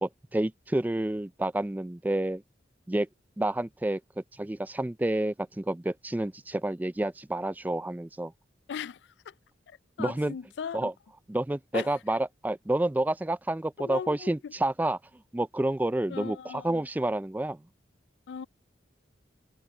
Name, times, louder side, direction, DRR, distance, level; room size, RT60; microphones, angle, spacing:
voice 1, 0.0-2.4 2.9-3.1 3.4-4.0 4.3-8.3 10.0-10.4 10.7-10.9 11.3-15.0 15.3-17.6, right 1 dB, 10° right, 0.3 m, -29 dB
voice 2, 8.7-9.0 9.3-9.4 9.7-10.9 11.7-12.0 13.8-14.5 16.1-16.8 18.3-18.5, left 7 dB, 75° left, 0.3 m, -38 dB
head